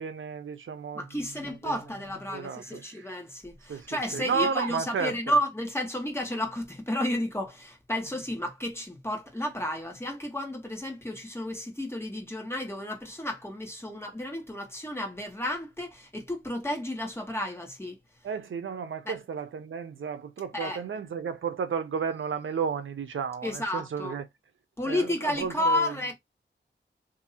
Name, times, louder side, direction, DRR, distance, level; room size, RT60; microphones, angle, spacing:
voice 1, 0.0-1.0 1.6-1.7 2.3-3.1 3.7-3.9 4.1-5.1 18.2-24.2 24.8-25.9, right 6 dB, 90° right, 0.6 m, -32 dB
voice 2, 0.9-18.0 19.0-19.1 20.5-20.8 23.4-24.2 24.8-26.1, left 1 dB, 10° left, 1.3 m, -32 dB
2.8 x 2.7 x 4.0 m
wide cardioid pair, 90°, 20 cm